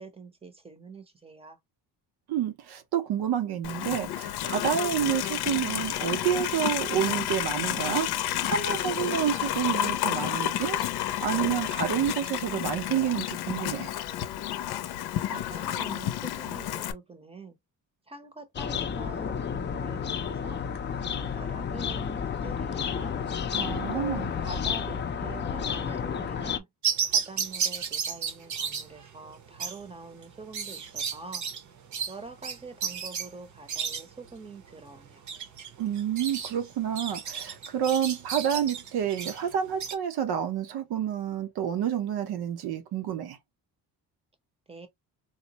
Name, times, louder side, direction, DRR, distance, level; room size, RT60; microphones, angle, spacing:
voice 1, 0.0-1.6 15.2-17.6 18.1-20.6 20.9-23.2 23.9-26.7 27.0-31.4 32.1-35.3 44.7-44.9, right 3 dB, 15° right, 0.7 m, -45 dB
voice 2, 2.3-10.8 11.2-13.9 23.5-24.3 35.8-43.4, right 9 dB, 75° right, 0.9 m, -29 dB
Livestock farm animals working animals, 3.6-16.9, left 12 dB, 80° left, 0.6 m, -30 dB
sound 1, 18.6-26.6, left 7 dB, 30° left, 0.4 m, -31 dB
sound 2, 26.8-40.0, right 7 dB, 50° right, 0.8 m, -33 dB
4.0 x 2.0 x 2.8 m
cardioid pair, 135°, 38 cm